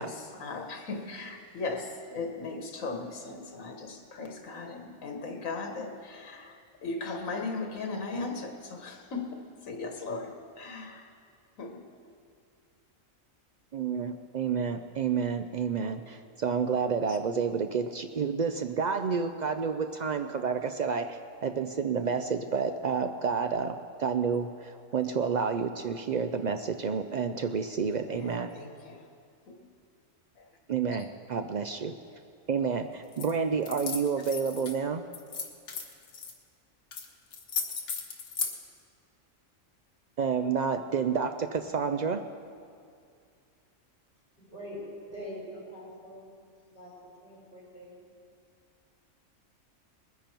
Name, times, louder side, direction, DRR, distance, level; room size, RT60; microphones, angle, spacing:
voice 1, 0.0-11.1 11.6-11.9 17.1-17.2 18.9-19.0 20.3-20.5 25.0-25.1 27.9-29.1 29.5-29.7 30.4-30.6 31.0-31.1, left 3 dB, 85° left, 4 dB, 1.6 m, -38 dB
voice 2, 13.7-28.5 30.7-31.9 32.5-35.0 40.2-42.2, right 6 dB, 75° right, 7 dB, 0.4 m, -30 dB
sound 1, 33.1-33.3 33.6-34.8 35.1-36.3 36.9-37.1 37.3-38.5, left 5 dB, 70° left, 1.5 m, -35 dB
voice 3, 44.5-44.8 45.1-46.3 46.7-46.9 47.2-48.0, equal, 45° left, -7 dB, 4.8 m, -43 dB
20.5 x 10.5 x 4.5 m, 2.3 s
omnidirectional pair, 1.4 m